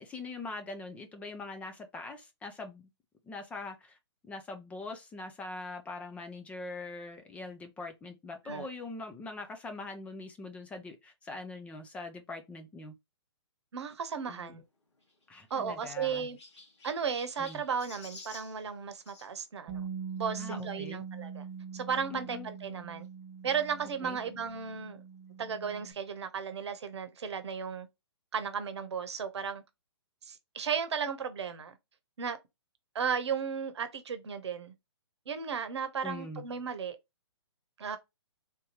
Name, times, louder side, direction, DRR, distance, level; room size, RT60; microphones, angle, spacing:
voice 1, 0.0-2.9 3.2-4.0 4.2-12.9 14.3-14.6 15.3-16.3 17.4-17.6 20.3-21.0 22.1-22.5 24.0-24.2 36.0-36.4, left 3 dB, 10° left, 0.4 m, -42 dB
voice 2, 13.7-14.6 15.5-16.4 16.8-19.9 20.2-21.5 21.7-23.1 23.4-25.0 25.4-27.9 28.3-29.6 30.2-31.8 32.2-32.4 32.9-34.7 35.3-37.0 37.8-38.0, right 6 dB, 70° right, 0.9 m, -35 dB
Chirp tweet, 15.0-19.3 20.5-20.7 21.4-21.5 21.7-21.8 23.0-23.1, left 3 dB, 80° left, 1.8 m, -52 dB
Bass guitar, 19.7-25.9, right 6 dB, 25° right, 1.6 m, -43 dB
3.5 x 2.8 x 2.9 m
hypercardioid pair, 140°, 15 cm